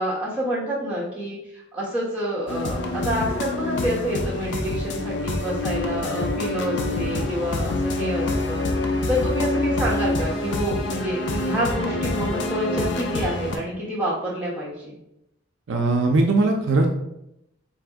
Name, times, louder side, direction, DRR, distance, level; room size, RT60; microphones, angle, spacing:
voice 1, 0.0-8.7 9.1-15.0, equal, 5° right, -7 dB, 1.2 m, -28 dB
sound 1, 2.5-13.6, left 2 dB, 60° left, 0.5 m, -26 dB
voice 2, 15.7-16.9, right 3 dB, 65° right, 3 dB, 0.4 m, -19 dB
4.0 x 2.6 x 3.5 m, 0.82 s
head